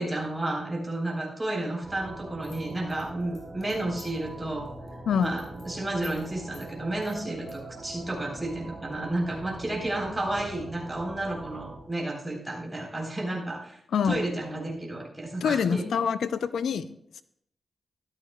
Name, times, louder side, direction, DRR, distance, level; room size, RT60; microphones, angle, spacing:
voice 1, 0.0-4.7 5.2-13.8 14.0-15.8, right 1 dB, 15° right, -2 dB, 3.9 m, -32 dB
sound 1, 1.8-11.8, right 2 dB, 40° right, 3.5 m, -43 dB
sound 2, 2.4-4.3 4.7-4.9 5.2-5.7 6.0-6.3 6.5-6.7 7.0-7.5, left 4 dB, 70° left, 4.2 m, -51 dB
voice 2, 13.9-14.2 15.4-17.2, left 7 dB, 85° left, 13 dB, 0.4 m, -26 dB
13.5 x 12.5 x 2.3 m, 0.72 s
cardioid pair, 70°, 0 cm